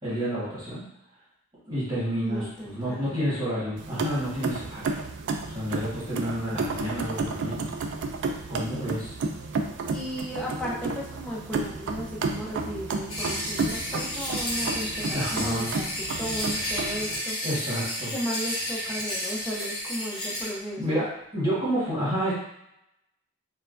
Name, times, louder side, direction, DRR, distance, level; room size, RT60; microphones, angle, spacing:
voice 1, 0.0-0.8 1.6-5.0 5.5-7.6 8.5-9.1 15.1-15.7 17.4-18.1 20.8-21.0 21.3-22.3, equal, 20° right, -10 dB, 1.5 m, -29 dB
voice 2, 2.2-3.2 9.9-15.9 16.2-17.4 18.0-21.0, equal, 5° left, -6 dB, 0.6 m, -35 dB
sound 1, 3.8-17.2, right 3 dB, 55° right, 0.3 m, -32 dB
sound 2, 13.1-20.5, equal, 45° left, 1.5 m, -32 dB
4.3 x 2.3 x 2.5 m, 0.81 s
head